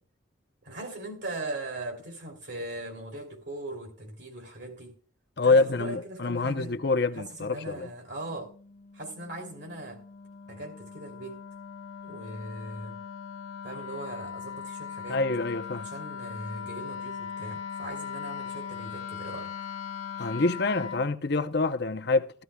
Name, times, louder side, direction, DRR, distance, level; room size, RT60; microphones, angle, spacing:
voice 1, 0.6-5.0 5.4-6.8 7.1-8.5 8.9-10.0 10.5-11.4 12.0-13.1 13.6-15.2 15.7-19.6, right 2 dB, 60° right, 3.0 m, -39 dB
voice 2, 5.4-7.9 15.1-15.9 20.2-22.4, left 3 dB, 55° left, 0.7 m, -26 dB
Wind instrument woodwind instrument, 8.2-21.1, left 7 dB, 85° left, 1.3 m, -40 dB
15.0 x 14.0 x 2.3 m
head